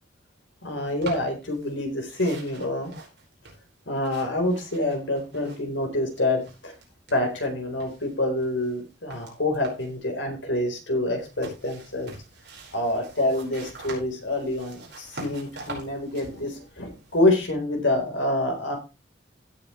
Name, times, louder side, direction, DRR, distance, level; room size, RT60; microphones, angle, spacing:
voice 1, 0.6-2.9 3.9-6.7 7.1-12.1 12.7-18.8, left 1 dB, 75° left, 3 dB, 4.1 m, -27 dB
sound 1, 0.9-1.8 2.1-5.8 6.1-7.5 7.8-10.0 11.2-17.5, right 3 dB, 55° right, 4.9 m, -45 dB
16.5 x 7.3 x 3.2 m, 0.28 s
head